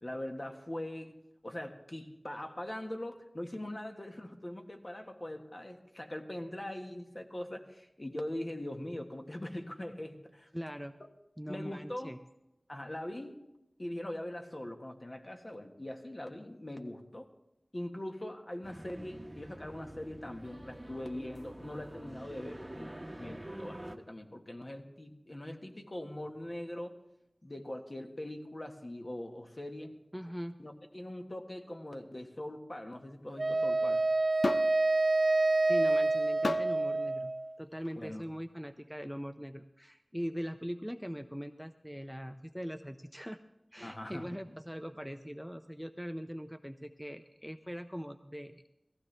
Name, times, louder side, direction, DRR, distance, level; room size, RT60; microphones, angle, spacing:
voice 1, 0.0-1.2 1.4-10.5 11.5-12.1 12.7-13.4 13.8-17.3 17.7-27.0 27.4-30.0 30.6-34.0 37.9-38.2 43.8-44.5, left 1 dB, 40° left, 4 dB, 1.4 m, -42 dB
voice 2, 10.5-10.9 11.4-12.2 30.1-30.6 35.7-37.3 37.6-43.4 43.7-48.6, equal, ahead, 9 dB, 0.5 m, -41 dB
sound 1, 18.6-24.0, right 1 dB, 20° right, 1.1 m, -46 dB
Wind instrument woodwind instrument, 33.4-37.5, right 2 dB, 60° right, 0.6 m, -28 dB
sound 2, 34.4-34.8 36.4-36.8 37.8-38.0, left 3 dB, 85° left, 0.4 m, -33 dB
18.0 x 14.5 x 3.3 m, 0.91 s
wide cardioid pair, 50°, 0 cm